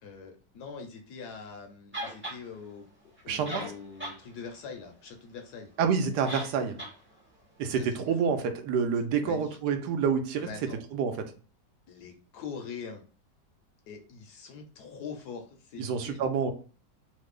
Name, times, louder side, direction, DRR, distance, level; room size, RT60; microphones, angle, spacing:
voice 1, 0.0-5.7 7.7-8.0 8.2-8.3 9.2-9.5 10.4-10.8 11.9-13.0 13.9-16.3, left 5 dB, 70° left, 4 dB, 1.1 m, -43 dB
sound 1, 1.9-2.4 3.2-3.3 3.4-4.2 4.5-4.6 6.3-6.5 6.8-6.9, equal, 15° right, 0.5 m, -36 dB
voice 2, 3.3-3.7 5.8-6.8 7.6-10.5 10.9-11.2 15.8-16.5, right 6 dB, 75° right, 6 dB, 1.1 m, -28 dB
3.1 x 2.0 x 3.5 m, 0.37 s
omnidirectional pair, 1.9 m